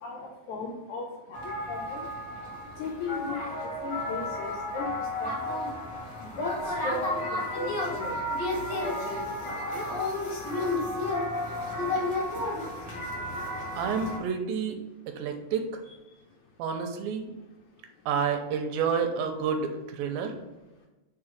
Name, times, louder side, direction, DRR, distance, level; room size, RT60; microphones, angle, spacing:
voice 1, 0.0-2.1 2.8-3.4 3.8-5.6 6.2-8.2 8.7-9.4 9.7-9.9 15.8-15.9, left 3 dB, 80° left, 0 dB, 1.7 m, -37 dB
sound 1, 1.3-14.2, left 1 dB, 45° left, 1.6 m, -32 dB
voice 2, 13.8-14.8 15.1-15.7 16.6-17.3 18.1-20.3, right 6 dB, 90° right, 5 dB, 2.6 m, -29 dB
4.9 x 4.7 x 5.0 m, 1.1 s
omnidirectional pair, 4.1 m